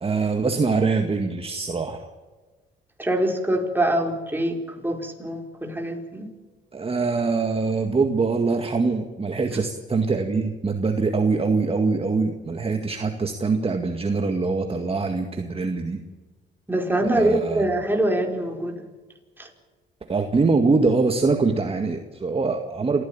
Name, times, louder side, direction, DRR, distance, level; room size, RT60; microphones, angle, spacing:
voice 1, 0.0-2.1 6.7-16.0 17.1-17.6 20.1-23.0, right 4 dB, 30° right, 5 dB, 2.0 m, -23 dB
voice 2, 3.0-6.3 9.5-9.6 16.7-18.8 19.4-19.5, right 1 dB, 10° right, 2 dB, 4.6 m, -24 dB
27.0 x 15.0 x 9.0 m, 1.3 s
cardioid pair, 90°, 20 cm